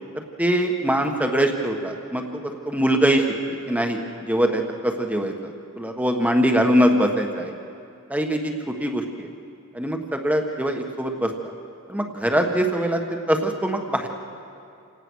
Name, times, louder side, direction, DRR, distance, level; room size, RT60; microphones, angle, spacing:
voice 1, 0.1-2.2 2.6-5.5 5.8-7.5 8.1-8.5 8.8-9.3 9.7-11.3 11.9-14.1, right 1 dB, 5° right, 3 dB, 1.4 m, -22 dB
29.0 x 18.0 x 6.4 m, 2.5 s
head